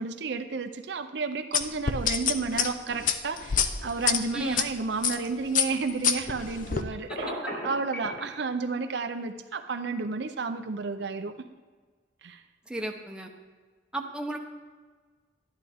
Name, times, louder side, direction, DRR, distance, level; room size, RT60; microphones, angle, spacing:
voice 1, 0.0-11.3 12.2-12.4, right 4 dB, 65° right, 8 dB, 0.5 m, -32 dB
sound 1, 1.5-4.6 5.0-5.3 5.5-6.8, left 7 dB, 45° left, 0.5 m, -26 dB
voice 2, 4.3-4.6 12.7-13.3 13.9-14.4, right 2 dB, 5° right, 2 dB, 0.8 m, -33 dB
Telephone, 7.1-8.2, equal, 70° left, 3.5 m, -33 dB
12.0 x 10.5 x 3.5 m, 1.5 s
head